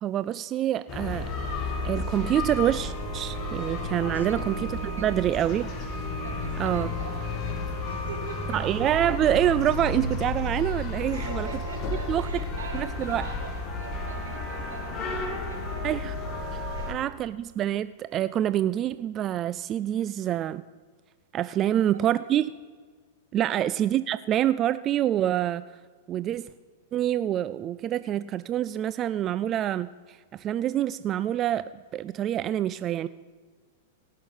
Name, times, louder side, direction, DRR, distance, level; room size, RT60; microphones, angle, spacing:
voice 1, 0.0-1.3 1.8-5.7 6.6-6.9 8.5-11.5 12.1-12.3 12.7-13.3 15.8-16.2 16.9-20.6 21.3-22.5 23.3-25.6 26.1-26.5 26.9-33.1, right 11 dB, 35° right, 15 dB, 0.3 m, -26 dB
sound 1, 0.9-16.9, left 2 dB, 35° left, 2.1 m, -32 dB
voice 2, 3.9-4.4 5.0-5.1 6.2-8.6 11.1-15.9 16.7-16.9 21.6-21.8 23.4-23.7, right 4 dB, 85° right, 4 dB, 2.2 m, -43 dB
18.0 x 6.5 x 5.6 m, 1.5 s
hypercardioid pair, 110°, 0 cm